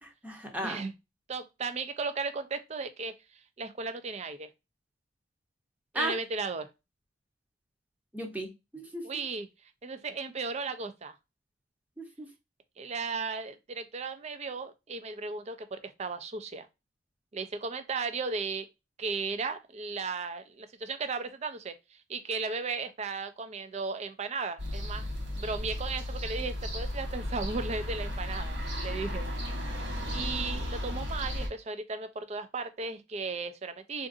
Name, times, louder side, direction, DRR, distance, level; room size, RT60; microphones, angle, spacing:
voice 1, 0.0-0.9 5.9-6.1 8.1-9.2 12.0-12.3, right 1 dB, 10° right, 0.7 m, -36 dB
voice 2, 1.3-3.2 3.6-4.5 5.9-6.7 9.0-9.5 9.8-11.1 12.8-16.7 17.3-18.7 19.0-25.1 25.4-29.3 30.1-34.1, right 4 dB, 35° right, 0.4 m, -35 dB
sound 1, 24.6-31.5, left 1 dB, 70° right, 1.1 m, -34 dB
3.7 x 2.5 x 2.4 m
head